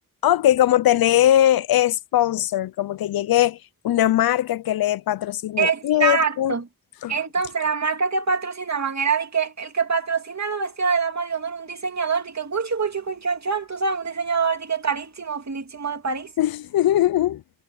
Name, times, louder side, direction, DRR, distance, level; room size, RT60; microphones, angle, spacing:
voice 1, 0.2-3.6 3.8-6.5 7.0-7.1 16.4-17.4, left 12 dB, 85° left, 0.5 m, -20 dB
voice 2, 5.6-6.6 7.1-16.3, right 5 dB, 50° right, 2.6 m, -25 dB
cardioid pair, 45°, 35 cm